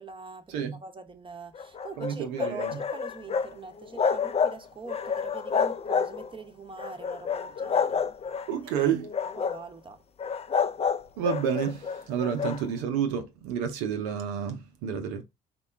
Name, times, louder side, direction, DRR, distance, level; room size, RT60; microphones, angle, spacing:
voice 1, 0.0-8.0 8.6-8.9 9.4-10.0, right 4 dB, 25° right, 0.8 m, -43 dB
sound 1, 1.5-3.5 3.8-4.6 4.9-6.4 6.8-8.5 9.0-9.6 10.2-12.6, left 6 dB, 30° left, 0.4 m, -29 dB
voice 2, 2.0-2.8 8.5-9.1 11.2-15.2, right 8 dB, 80° right, 0.6 m, -30 dB
3.5 x 2.2 x 3.3 m
hypercardioid pair, 50°, 21 cm